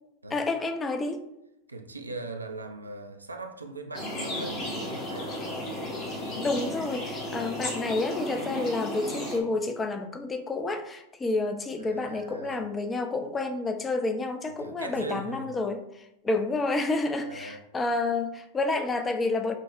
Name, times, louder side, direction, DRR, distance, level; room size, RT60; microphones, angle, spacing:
voice 1, 0.3-1.2 6.3-15.8 16.2-19.5, left 3 dB, 15° left, 0.4 m, -29 dB
voice 2, 1.7-5.6 7.6-7.7 11.8-12.6 14.5-15.5 17.3-17.6, right 2 dB, 80° right, 0.4 m, -40 dB
sound 1, 3.9-9.4, left 1 dB, 35° left, 0.8 m, -34 dB
5.1 x 2.0 x 2.4 m
figure-of-eight pair, 90°, 0 cm